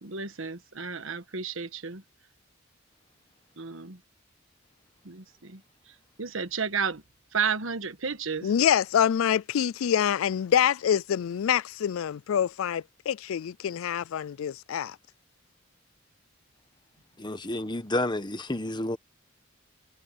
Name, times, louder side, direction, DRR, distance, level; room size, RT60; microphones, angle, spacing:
voice 1, 0.0-2.0 3.6-4.0 5.0-5.6 6.2-7.0 7.3-8.5, right 6 dB, 70° right, 1.4 m, -32 dB
voice 2, 8.4-15.0, left 9 dB, 80° left, 0.4 m, -26 dB
voice 3, 17.2-19.0, left 1 dB, 20° left, 1.2 m, -30 dB
head